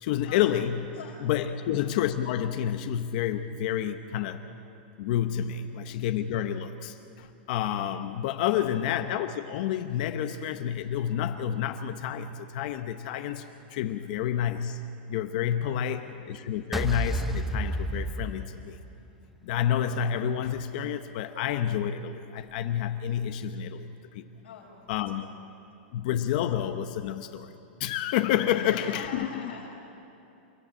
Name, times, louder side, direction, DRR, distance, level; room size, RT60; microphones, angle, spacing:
voice 1, 0.0-0.8 1.2-4.4 5.0-14.8 15.1-18.8 19.4-24.2 24.9-25.3 25.9-27.5 27.8-29.4, left 10 dB, 45° left, 8 dB, 0.9 m, -29 dB
voice 2, 15.8-16.5 24.4-25.3 25.8-25.9 28.5-29.7, left 6 dB, 85° left, -5 dB, 5.3 m, -45 dB
sound 1, 16.7-19.1, right 1 dB, 5° right, 0.8 m, -31 dB
29.0 x 13.5 x 8.9 m, 2.7 s
supercardioid pair, 160°, 6 cm